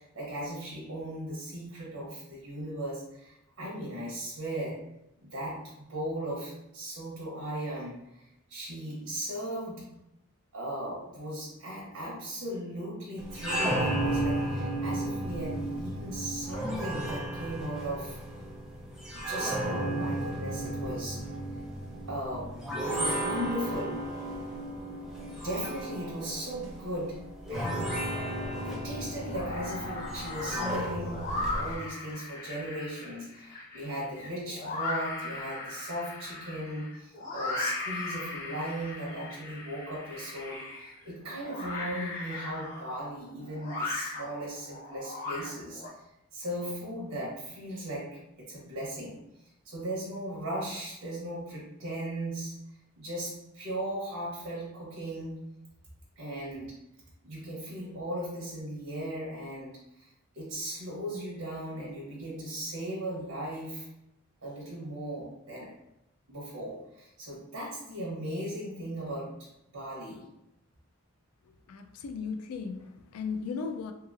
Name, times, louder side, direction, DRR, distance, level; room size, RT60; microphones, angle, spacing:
voice 1, 0.0-4.8 5.2-10.0 10.5-18.2 19.1-21.3 22.1-24.1 25.2-28.1 28.6-45.8 46.3-49.2 49.6-52.6 53.0-55.4 56.2-56.8 57.2-60.1 60.3-63.9 64.4-65.7 66.3-69.4 69.7-70.3, right 1 dB, 85° right, -5 dB, 0.9 m, -37 dB
sound 1, 13.2-31.8, right 1 dB, ahead, 0.4 m, -34 dB
sound 2, 28.1-28.8 29.2-45.9, left 2 dB, 35° left, 1.2 m, -38 dB
voice 2, 71.7-73.9, left 5 dB, 85° left, 7 dB, 0.3 m, -36 dB
2.8 x 2.8 x 2.4 m, 0.84 s
head